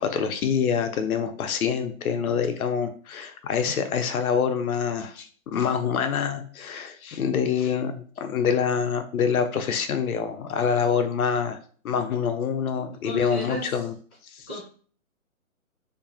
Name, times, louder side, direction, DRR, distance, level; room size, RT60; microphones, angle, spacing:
voice 1, 0.0-11.6 11.8-13.9 14.3-14.5, left 7 dB, 90° left, 7 dB, 0.6 m, -26 dB
voice 2, 13.0-13.7 14.5-14.6, equal, ahead, -16 dB, 0.5 m, -33 dB
2.6 x 2.3 x 2.4 m, 0.43 s
hypercardioid pair, 155°, 41 cm